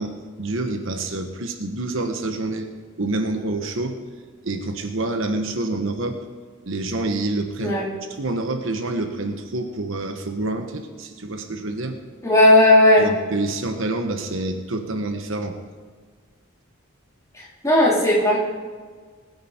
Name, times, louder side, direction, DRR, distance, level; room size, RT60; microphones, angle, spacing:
voice 1, 0.0-2.7 3.0-4.0 4.4-6.2 6.6-7.8 8.2-11.9 13.0-15.6, right 2 dB, 60° right, 6 dB, 1.1 m, -27 dB
voice 2, 12.2-13.1 17.3-18.4, left 1 dB, 15° left, -6 dB, 3.4 m, -16 dB
20.5 x 9.4 x 4.4 m, 1.6 s
head